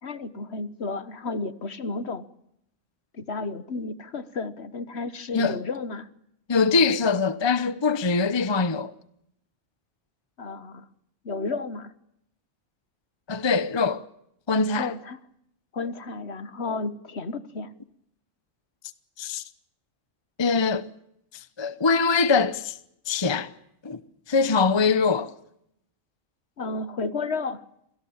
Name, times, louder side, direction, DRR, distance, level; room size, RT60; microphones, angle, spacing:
voice 1, 0.0-2.3 3.1-6.1 10.4-10.9 11.2-11.9 14.8-15.2 15.7-17.7 26.6-27.6, left 3 dB, 55° left, 1.5 m, -32 dB
voice 2, 6.5-8.9 13.3-14.0 14.5-14.9 19.2-19.4 20.4-20.9 21.6-22.8 23.1-23.5 23.8-24.0 24.3-25.3, left 4 dB, 25° left, 0.8 m, -23 dB
26.5 x 17.5 x 8.7 m
omnidirectional pair, 1.4 m